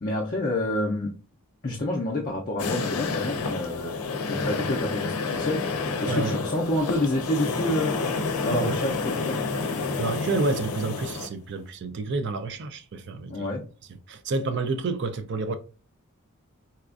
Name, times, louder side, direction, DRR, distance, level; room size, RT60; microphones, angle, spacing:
voice 1, 0.0-1.1 1.6-3.9 4.3-5.6 6.0-8.0 8.4-9.4 13.3-13.6, left 1 dB, 40° left, 0.5 m, -28 dB
sound 1, 2.6-11.3, left 4 dB, 90° left, 0.5 m, -29 dB
voice 2, 6.1-6.4 8.5-8.7 10.0-13.5 13.9-15.5, right 3 dB, 50° right, 0.4 m, -29 dB
4.2 x 2.4 x 2.4 m
head